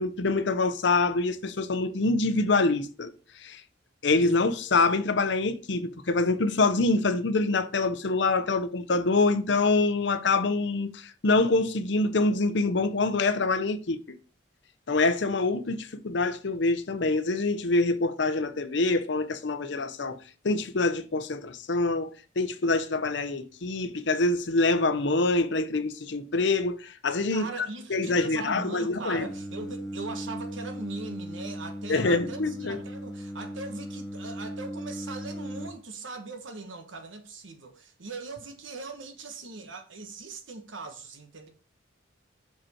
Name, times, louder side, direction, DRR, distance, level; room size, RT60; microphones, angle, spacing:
voice 1, 0.0-3.1 3.4-3.6 4.0-14.0 14.9-20.2 20.4-22.1 22.4-29.3 31.9-32.8, left 3 dB, 65° left, 0.7 m, -25 dB
voice 2, 27.3-41.5, right 3 dB, 85° right, 1.3 m, -40 dB
Singing, 29.2-35.7, equal, ahead, 0.9 m, -37 dB
6.1 x 5.1 x 4.3 m
head